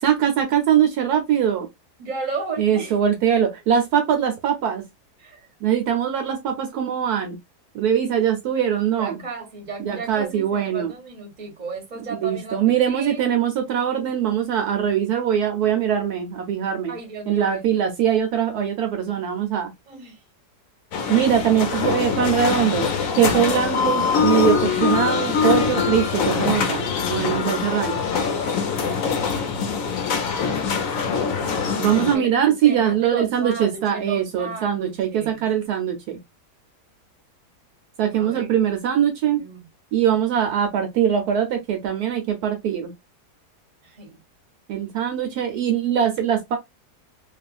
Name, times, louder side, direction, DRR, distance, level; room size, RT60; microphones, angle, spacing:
voice 1, 0.0-1.7 2.6-4.8 5.6-7.4 7.7-9.2 9.9-10.9 12.1-16.9 17.3-19.7 21.1-22.9 23.2-28.0 31.8-36.2 38.0-39.4 39.9-42.9 44.7-46.6, right 9 dB, 70° right, 1.1 m, -22 dB
voice 2, 2.0-2.9 5.2-5.5 9.0-13.2 16.9-17.7 19.9-20.2 31.8-32.3 32.6-35.4 38.1-38.6 39.4-39.7 43.8-44.2, right 4 dB, 30° right, 1.0 m, -34 dB
sound 1, 20.9-32.2, left 5 dB, 65° left, 0.9 m, -23 dB
3.0 x 2.4 x 2.3 m
omnidirectional pair, 1.8 m